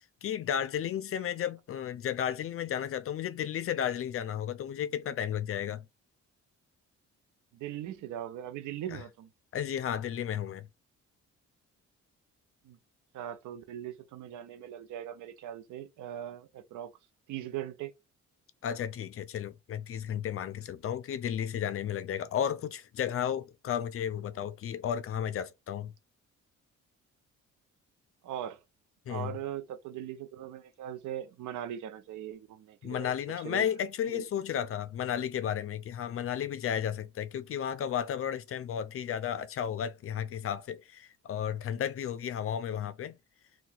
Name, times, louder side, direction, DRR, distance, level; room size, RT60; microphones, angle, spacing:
voice 1, 0.2-5.8 8.9-9.0 9.5-10.7 18.6-25.9 29.1-29.3 32.8-43.2, left 9 dB, 50° left, 0.4 m, -33 dB
voice 2, 7.5-9.3 12.6-12.8 13.1-16.9 17.3-17.9 28.2-28.6 29.1-33.1 33.4-33.7 34.1-34.2, right 11 dB, 80° right, 0.6 m, -40 dB
2.8 x 2.3 x 3.8 m
cardioid pair, 90°, 30 cm